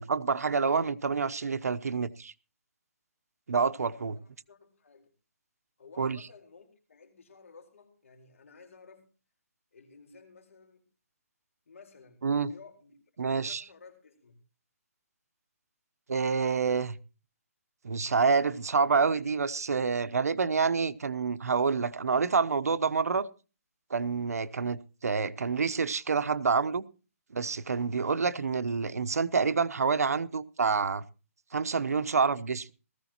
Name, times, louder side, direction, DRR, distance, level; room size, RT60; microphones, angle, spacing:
voice 1, 0.0-2.3 3.5-4.2 6.0-6.2 12.2-12.5 13.2-13.6 16.1-17.0 17.8-23.3 23.9-26.8 27.3-31.0 31.5-32.7, right 5 dB, 85° right, 0.8 m, -27 dB
voice 2, 4.1-5.1 5.8-9.1 9.7-10.9 11.7-12.9 13.2-14.4, left 5 dB, 60° left, 4.3 m, -54 dB
18.5 x 14.5 x 2.9 m
hypercardioid pair, 170°, 8 cm